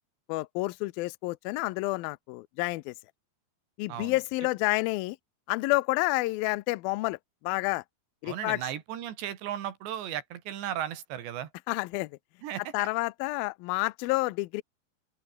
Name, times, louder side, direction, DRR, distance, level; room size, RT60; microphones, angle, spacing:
voice 1, 0.3-2.9 3.8-5.2 5.5-7.2 7.4-7.8 8.2-8.6 11.7-12.1 12.7-14.6, left 22 dB, 85° left, 2.1 m, -29 dB
voice 2, 8.3-11.5 12.4-12.9, right 11 dB, 80° right, 4.4 m, -36 dB
open air
omnidirectional pair, 5.0 m